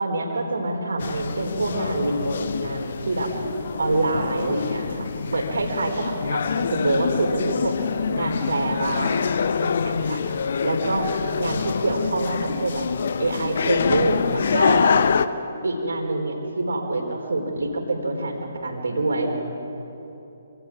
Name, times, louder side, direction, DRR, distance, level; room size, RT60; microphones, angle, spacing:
voice 1, 0.0-3.3 3.8-7.8 8.1-10.2 10.6-12.8 13.2-14.9 15.6-19.3, right 2 dB, 65° right, 2 dB, 4.4 m, -26 dB
University Hallway People, 1.0-15.3, left 6 dB, 50° left, 0.9 m, -25 dB
27.5 x 27.0 x 4.9 m, 2.9 s
figure-of-eight pair, 135°, 0 cm